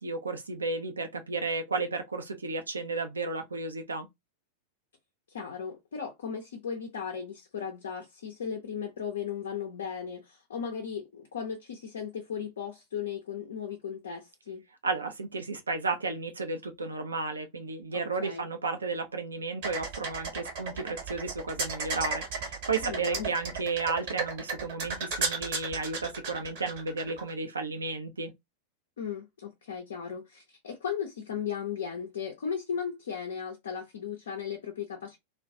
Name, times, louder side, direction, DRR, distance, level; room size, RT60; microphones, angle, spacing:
voice 1, 0.0-4.1 14.8-28.3, right 3 dB, 75° right, 0.5 m, -33 dB
voice 2, 5.3-14.7 17.9-18.5 22.8-23.3 29.0-35.2, left 7 dB, 65° left, 0.5 m, -36 dB
sound 1, 19.6-27.3, right 4 dB, 50° right, 0.9 m, -34 dB
2.2 x 2.2 x 2.6 m
figure-of-eight pair, 90°, 0 cm